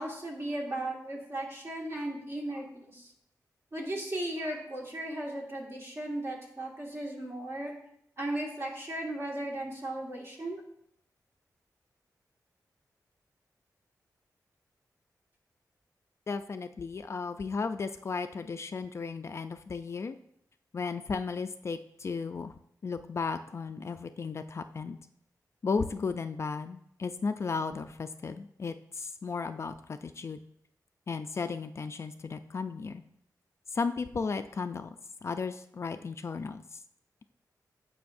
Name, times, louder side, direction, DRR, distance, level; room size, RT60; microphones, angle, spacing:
voice 1, 0.0-3.1 3.7-7.7 8.2-10.6, right 1 dB, 40° right, -2 dB, 1.9 m, -36 dB
voice 2, 16.3-20.2 20.7-22.5 22.8-25.0 25.6-30.4 31.1-33.0 33.7-36.8, left 4 dB, 45° left, 9 dB, 0.3 m, -35 dB
16.5 x 5.5 x 2.6 m, 0.72 s
wide cardioid pair, 170°, 7 cm